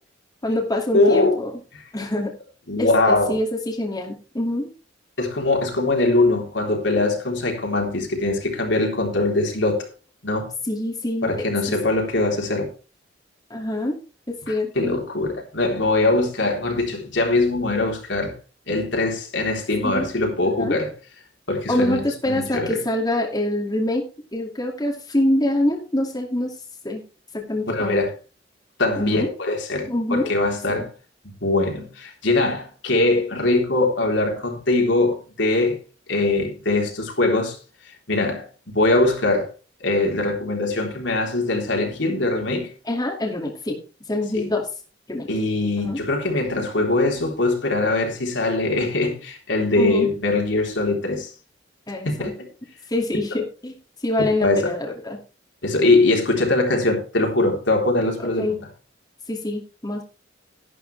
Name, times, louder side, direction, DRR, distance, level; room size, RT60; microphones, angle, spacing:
voice 1, 0.4-1.5 1.9-2.3 2.8-4.7 10.7-11.3 13.5-14.0 14.3-15.0 19.8-20.1 20.6-20.8 21.7-24.1 24.3-26.5 26.8-27.0 27.5-28.0 29.0-29.3 29.9-30.3 30.7-30.9 42.9-43.8 44.1-44.6 45.1-45.3 45.8-46.0 49.8-50.1 51.9-52.3 52.9-53.7 54.0-55.2 58.2-58.6 59.3-60.0, left 1 dB, 20° left, 2.4 m, -25 dB
voice 2, 0.9-1.4 2.7-3.4 5.2-9.9 10.2-10.5 11.2-12.7 14.5-18.4 18.7-20.9 21.5-22.0 22.3-22.8 27.7-28.1 28.8-30.9 31.4-35.8 36.1-37.6 38.1-39.5 39.8-42.7 44.3-44.5 45.3-51.3 52.1-52.5 54.4-54.7 55.6-58.6, left 2 dB, 70° left, 3.6 m, -22 dB
12.0 x 12.0 x 3.4 m
head